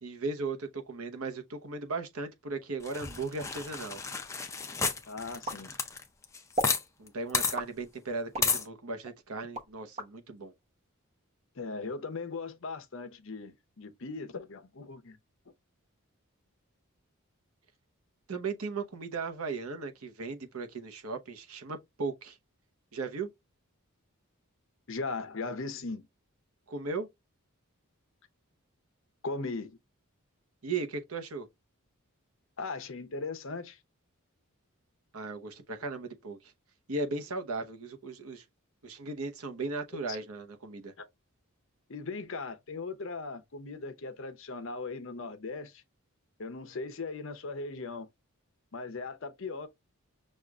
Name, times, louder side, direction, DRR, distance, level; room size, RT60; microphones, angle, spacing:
voice 1, 0.0-4.0 7.0-10.5 18.3-22.4 22.9-23.3 26.7-27.1 30.6-31.5 35.1-36.5 36.9-38.4 38.8-40.9, right 3 dB, 75° right, 0.9 m, -37 dB
sound 1, 2.9-6.8 7.1-7.2 7.3-7.5 8.4-8.6, left 5 dB, 15° left, 0.4 m, -31 dB
voice 2, 5.1-5.7 11.6-15.2 24.9-26.1 29.2-29.8 32.6-33.8 40.1-40.2 41.0-41.1 41.9-45.8 46.4-48.1 48.7-49.7, left 3 dB, 60° left, 0.7 m, -38 dB
sound 2, 5.4-6.1 6.5-6.8 7.5-8.5 9.0-10.1, right 1 dB, 30° right, 0.9 m, -36 dB
6.3 x 2.4 x 2.4 m
head